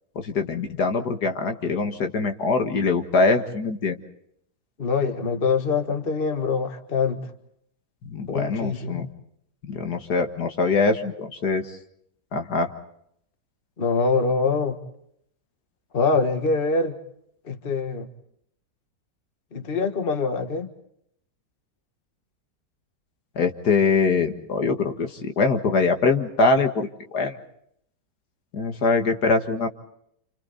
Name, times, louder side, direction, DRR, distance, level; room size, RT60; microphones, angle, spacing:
voice 1, 0.2-4.0 8.0-9.1 9.7-11.7 12.3-12.7 23.4-27.4 28.5-29.7, left 4 dB, 65° left, 2.2 m, -23 dB
voice 2, 4.8-7.3 8.3-9.1 13.8-14.8 15.9-17.0 17.5-18.1 19.5-20.7, left 4 dB, 35° left, 1.6 m, -24 dB
29.5 x 28.5 x 4.1 m
omnidirectional pair, 1.8 m